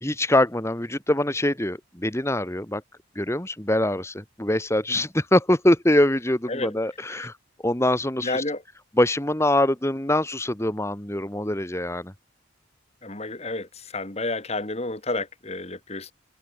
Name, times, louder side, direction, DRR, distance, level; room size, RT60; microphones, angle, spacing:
voice 1, 0.0-2.8 3.1-7.3 7.6-8.4 9.0-12.1, left 1 dB, 15° left, 1.6 m, -23 dB
voice 2, 8.2-8.6 13.0-16.1, left 2 dB, 30° left, 2.4 m, -30 dB
head